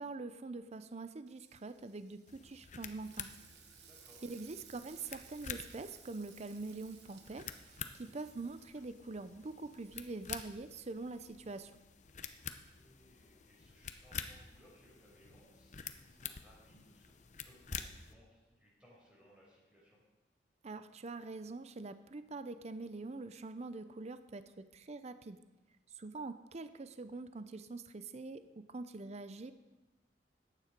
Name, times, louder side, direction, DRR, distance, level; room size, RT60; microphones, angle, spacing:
voice 1, 0.0-3.3 4.2-11.7 20.6-24.4 24.7-25.4 26.0-29.5, right 3 dB, 40° right, 12 dB, 0.5 m, -44 dB
Frying (food), 1.3-11.0, right 9 dB, 70° right, 1.1 m, -61 dB
sound 1, 2.3-18.1, left 7 dB, 45° left, 0.7 m, -49 dB
voice 2, 3.8-4.2 7.9-8.2 12.4-17.1 17.4-20.0, equal, 5° right, -6 dB, 5.2 m, -64 dB
14.0 x 9.6 x 5.1 m, 1.1 s
head